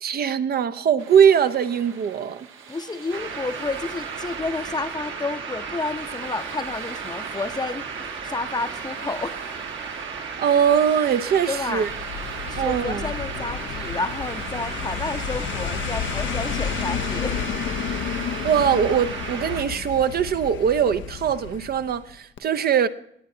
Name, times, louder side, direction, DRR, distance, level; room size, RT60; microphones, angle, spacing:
voice 1, 0.0-2.5 10.4-11.9 12.6-13.1 18.4-22.9, right 8 dB, 50° right, 0.6 m, -21 dB
sound 1, 1.0-18.7, right 6 dB, 85° right, 1.2 m, -44 dB
voice 2, 2.7-9.5 11.5-11.9 12.4-17.4, left 3 dB, 20° left, 0.6 m, -30 dB
sound 2, 3.1-19.6, right 5 dB, 70° right, 1.5 m, -34 dB
sound 3, 11.7-22.1 22.4-22.5, left 9 dB, 70° left, 0.6 m, -31 dB
18.5 x 8.2 x 2.7 m
cardioid pair, 90°, 20 cm